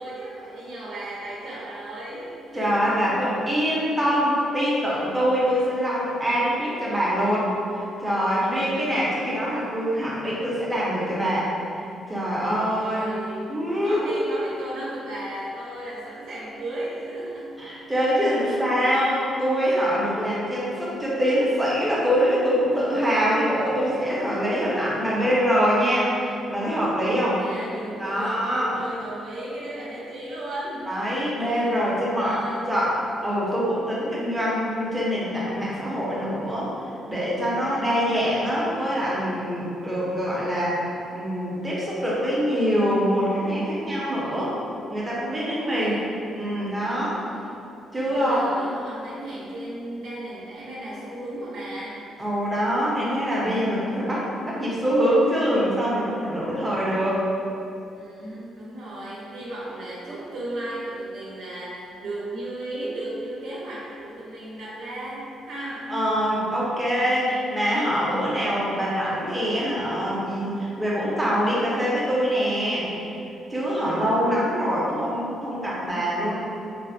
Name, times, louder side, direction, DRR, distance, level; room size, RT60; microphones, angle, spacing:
voice 1, 0.0-3.0 8.5-8.8 12.7-17.6 18.4-18.7 27.1-32.7 37.5-37.9 45.3-46.1 46.9-47.7 48.1-52.1 57.9-65.9, right 1 dB, 70° right, -7 dB, 0.6 m, -36 dB
voice 2, 2.5-11.5 12.1-13.1 13.5-14.2 17.6-27.4 28.0-28.8 30.9-33.0 33.2-40.8 41.1-44.6 44.9-47.2 47.9-48.4 52.2-57.2 65.9-72.9 73.5-76.4, equal, 10° right, -7 dB, 0.6 m, -24 dB
3.2 x 2.0 x 2.5 m, 2.7 s
cardioid pair, 155°, 0 cm